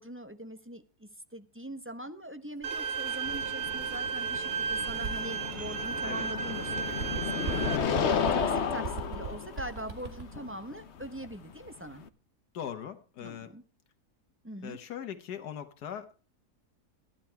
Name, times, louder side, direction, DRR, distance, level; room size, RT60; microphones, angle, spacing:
voice 1, 0.0-12.0 13.2-13.6 14.4-14.8, right 1 dB, 10° right, 9 dB, 0.6 m, -42 dB
Bird, 2.6-6.2 6.6-10.4, right 4 dB, 40° right, 2.0 m, -41 dB
Bowed string instrument, 2.6-7.8, right 5 dB, 85° right, 1.5 m, -34 dB
sound 1, 3.2-12.1, left 6 dB, 50° left, 1.0 m, -33 dB
voice 2, 12.5-13.5 14.6-16.1, left 9 dB, 85° left, 7 dB, 1.6 m, -40 dB
15.0 x 10.5 x 4.5 m, 0.36 s
omnidirectional pair, 1.7 m